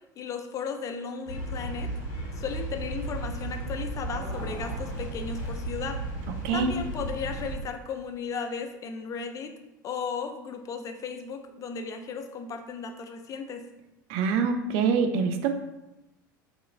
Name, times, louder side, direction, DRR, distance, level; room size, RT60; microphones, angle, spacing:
voice 1, 0.2-1.9 2.3-6.0 6.5-9.5 9.8-13.6, left 5 dB, 30° left, 6 dB, 0.3 m, -35 dB
sound 1, 1.3-7.5, right 2 dB, 65° left, 0.7 m, -34 dB
sound 2, 4.1-6.0 6.2-6.3 6.8-6.9 7.8-7.9 8.3-8.4, equal, 85° right, 1.0 m, -44 dB
voice 2, 14.1-15.5, right 5 dB, 55° right, 6 dB, 0.4 m, -25 dB
2.7 x 2.6 x 2.4 m, 0.95 s
figure-of-eight pair, 75°, 11 cm